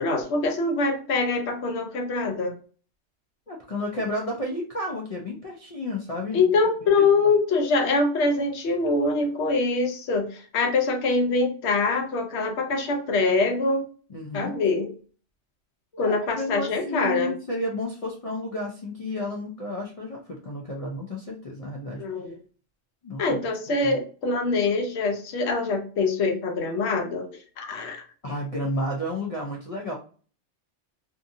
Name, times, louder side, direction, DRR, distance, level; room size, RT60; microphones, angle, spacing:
voice 1, 0.0-2.5 6.3-13.8 14.3-14.9 16.0-17.3 22.0-22.4 23.2-27.3 27.6-28.0, left 3 dB, 65° left, 4 dB, 0.9 m, -24 dB
voice 2, 3.5-6.5 6.9-7.3 14.1-14.5 15.9-22.0 23.0-23.4 23.8-24.0 28.2-30.0, left 1 dB, 50° left, -1 dB, 0.4 m, -32 dB
2.7 x 2.6 x 2.5 m, 0.39 s
omnidirectional pair, 1.3 m